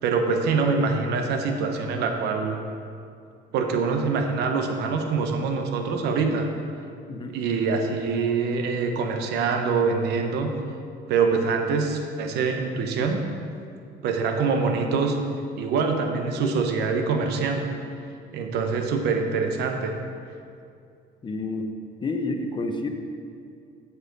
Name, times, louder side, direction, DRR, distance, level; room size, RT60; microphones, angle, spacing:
voice 1, 0.0-2.6 3.5-6.5 7.3-10.5 11.1-13.2 14.0-15.2 15.6-17.7 18.3-19.9, right 4 dB, 80° right, 4 dB, 1.0 m, -24 dB
voice 2, 21.2-21.7 22.0-22.9, left 2 dB, 30° left, 4 dB, 0.9 m, -29 dB
8.1 x 7.2 x 5.3 m, 2.4 s
cardioid pair, 110°, 17 cm